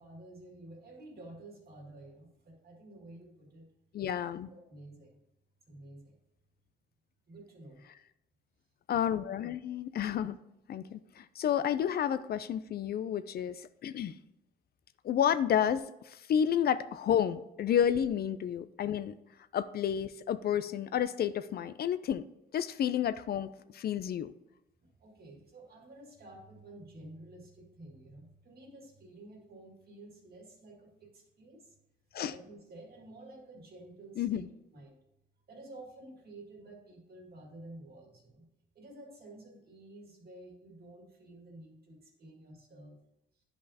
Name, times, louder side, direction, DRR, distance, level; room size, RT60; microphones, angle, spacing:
voice 1, 0.0-3.7 4.5-5.2 5.7-6.2 7.3-7.8 24.8-31.8 32.3-35.0 35.5-38.5 38.8-43.0, right 2 dB, 50° right, 1 dB, 2.0 m, -51 dB
voice 2, 3.9-4.5 8.9-10.4 10.7-14.2 15.0-19.2 19.5-22.2 22.5-24.3 32.1-32.3 34.2-34.5, left 9 dB, 50° left, 13 dB, 0.4 m, -31 dB
10.0 x 5.4 x 2.8 m, 0.84 s
cardioid pair, 90°, 20 cm